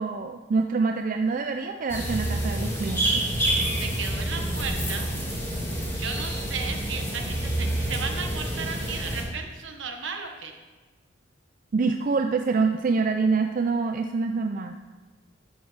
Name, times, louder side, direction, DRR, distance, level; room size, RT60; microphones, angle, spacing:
voice 1, 0.0-3.2 11.7-14.7, right 4 dB, 45° right, 6 dB, 0.4 m, -26 dB
sound 1, 1.9-9.2, right 1 dB, 15° left, 3.1 m, -28 dB
sound 2, 3.2-8.7, equal, 35° left, 1.1 m, -42 dB
voice 2, 3.6-5.1 6.0-10.5, right 5 dB, 75° right, 4 dB, 1.2 m, -35 dB
11.5 x 8.1 x 3.3 m, 1.3 s
head